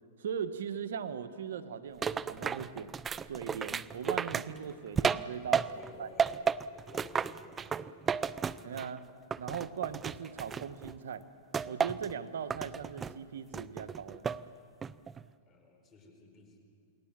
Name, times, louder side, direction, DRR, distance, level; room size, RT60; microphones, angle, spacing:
voice 1, 0.2-3.0 3.3-5.6 6.0-6.1 8.6-9.0 9.4-11.2 11.6-14.3, right 7 dB, 80° right, 11 dB, 1.3 m, -39 dB
sound 1, 2.0-5.9 6.2-9.0 9.3-10.9 11.5-12.1 12.5-13.1 13.5-14.4 14.8-15.2, right 6 dB, 20° right, 0.5 m, -33 dB
voice 2, 5.6-8.3 15.4-16.6, left 2 dB, 25° left, 4 dB, 4.6 m, -54 dB
28.5 x 21.0 x 7.6 m, 2.5 s
hypercardioid pair, 120°, 0 cm